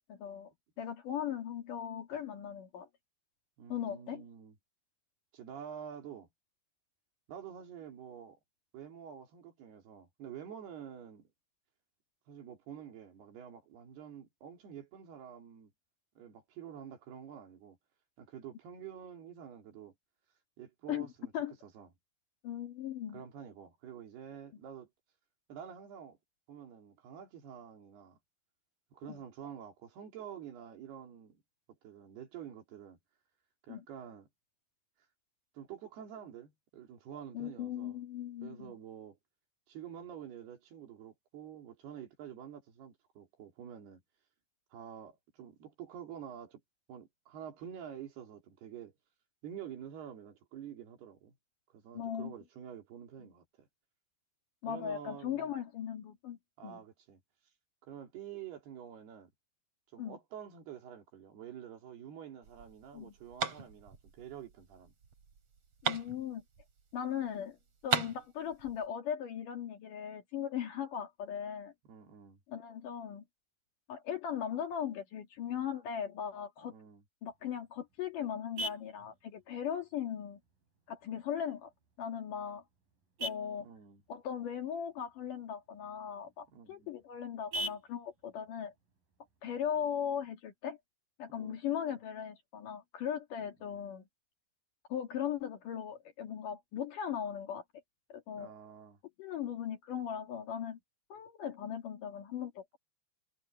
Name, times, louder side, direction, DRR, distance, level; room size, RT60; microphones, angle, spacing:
voice 1, 0.1-0.5 0.8-2.9 3.7-4.2 20.9-21.1 21.3-21.6 22.4-23.2 29.1-29.2 33.7-33.8 37.3-38.7 51.9-52.3 54.6-56.8 60.0-60.2 62.9-63.1 65.8-66.4 66.9-67.6 67.8-71.7 72.5-73.2 73.9-76.7 77.2-80.4 80.9-81.7 82.0-82.6 83.2-83.7 84.1-88.7 89.4-90.8 91.2-94.0 94.9-97.6 98.1-98.5 99.2-100.8 101.1-102.8, left 9 dB, 60° left, 3.2 m, -38 dB
voice 2, 3.6-4.6 5.3-6.3 7.3-8.4 8.7-11.3 12.3-15.7 16.2-17.8 18.2-19.9 20.6-21.3 21.6-21.9 23.1-24.9 25.5-26.2 26.5-28.2 28.9-31.3 31.8-33.0 33.6-34.3 35.5-38.0 38.4-39.2 39.7-44.0 44.7-46.6 46.9-48.9 49.4-51.4 51.7-53.7 54.7-55.5 56.6-57.2 57.8-59.3 59.9-64.9 71.9-72.4 76.7-77.0 83.6-84.0 86.5-86.9 91.3-91.6 93.4-93.7 98.4-99.0, right 9 dB, 85° right, 5.0 m, -48 dB
sound 1, 62.4-67.0 67.3-67.4 67.6-68.9, right 5 dB, 40° right, 3.5 m, -37 dB
Vehicle horn car horn honking, 77.3-90.3, right 1 dB, 60° right, 7.0 m, -47 dB
omnidirectional pair, 4.5 m